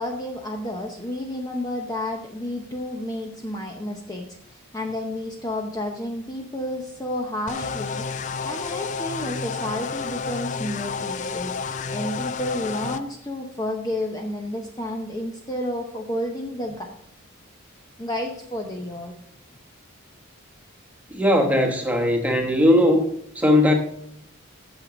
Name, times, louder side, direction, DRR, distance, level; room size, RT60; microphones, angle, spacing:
voice 1, 0.0-11.5 11.9-16.9 18.0-19.1, left 1 dB, 15° left, 1 dB, 0.7 m, -31 dB
sound 1, 7.5-13.0, left 5 dB, 35° left, 0.3 m, -30 dB
voice 2, 21.1-23.1 23.3-23.7, left 1 dB, 5° right, 3 dB, 1.2 m, -18 dB
9.0 x 6.9 x 5.1 m, 0.73 s
head